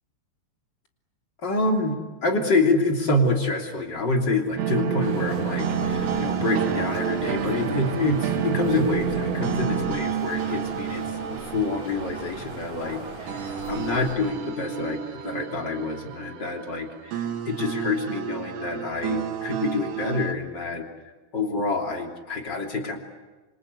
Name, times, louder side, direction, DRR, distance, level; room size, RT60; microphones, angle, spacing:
voice 1, 1.4-20.9 21.3-23.0, left 2 dB, 25° left, 2 dB, 2.8 m, -27 dB
sound 1, 4.6-20.3, right 8 dB, 90° right, 4.5 m, -30 dB
sound 2, 5.0-14.1, right 2 dB, 40° right, 5.2 m, -37 dB
27.5 x 26.0 x 8.3 m, 1.2 s
omnidirectional pair, 5.7 m